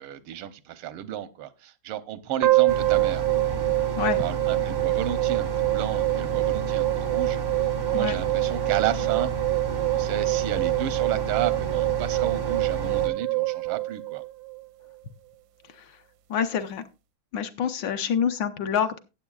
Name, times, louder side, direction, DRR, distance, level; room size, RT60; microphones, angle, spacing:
voice 1, 0.0-3.2 4.2-7.4 7.9-9.3 9.9-14.2, right 11 dB, 90° right, 1.7 m, -32 dB
sound 1, 2.4-14.6, right 21 dB, 70° right, 1.0 m, -25 dB
sound 2, 2.7-13.1, right 3 dB, 45° right, 0.5 m, -32 dB
voice 2, 16.3-16.8 17.3-19.0, left 8 dB, 65° left, 1.4 m, -27 dB
17.0 x 7.6 x 2.3 m
omnidirectional pair, 2.3 m